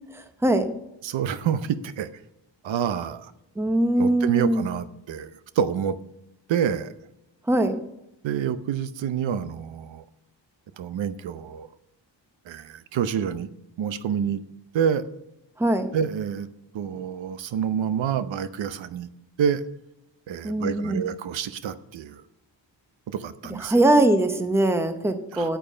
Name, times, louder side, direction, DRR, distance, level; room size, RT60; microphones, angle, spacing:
voice 1, 0.1-0.7 3.6-4.7 7.5-7.8 15.6-15.9 20.4-21.1 23.6-25.6, right 1 dB, 5° right, 8 dB, 0.8 m, -22 dB
voice 2, 1.0-2.1 2.6-3.3 4.0-5.3 5.6-6.0 6.5-6.9 8.2-10.0 10.8-11.7 12.5-13.5 13.8-14.4 14.7-15.1 15.9-16.5 16.7-19.1 19.4-19.6 20.3-22.2 23.1-23.7 25.3-25.5, right 8 dB, 75° right, 13 dB, 0.8 m, -27 dB
9.3 x 8.9 x 5.4 m, 0.85 s
wide cardioid pair, 170°, 45 cm